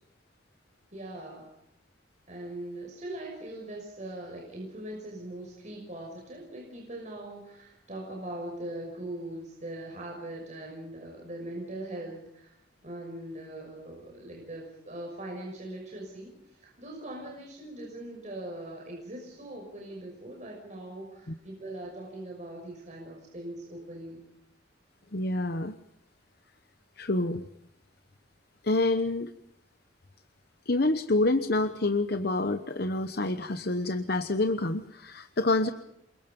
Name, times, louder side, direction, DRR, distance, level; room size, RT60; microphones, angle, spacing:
voice 1, 0.9-1.5 2.3-12.5 12.8-24.2, right 1 dB, 35° right, -1 dB, 6.1 m, -41 dB
voice 2, 25.1-25.8 27.0-27.5 28.6-29.3 30.7-35.7, left 2 dB, 50° left, 9 dB, 1.0 m, -27 dB
28.5 x 23.5 x 5.4 m, 0.80 s
head